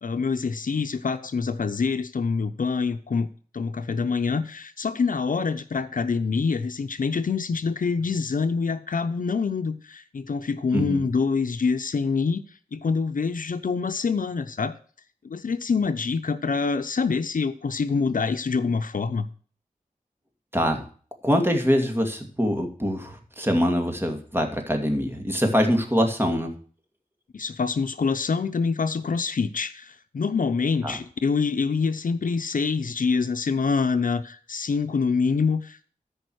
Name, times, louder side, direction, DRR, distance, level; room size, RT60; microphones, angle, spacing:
voice 1, 0.0-3.3 3.5-12.4 12.7-14.7 15.2-19.3 27.3-35.8, left 5 dB, 65° left, 10 dB, 0.7 m, -26 dB
voice 2, 10.7-11.0 20.5-20.8 21.2-26.5 30.8-31.0, equal, 15° right, 4 dB, 2.5 m, -24 dB
13.5 x 5.4 x 6.3 m, 0.43 s
wide cardioid pair, 85°, 15 cm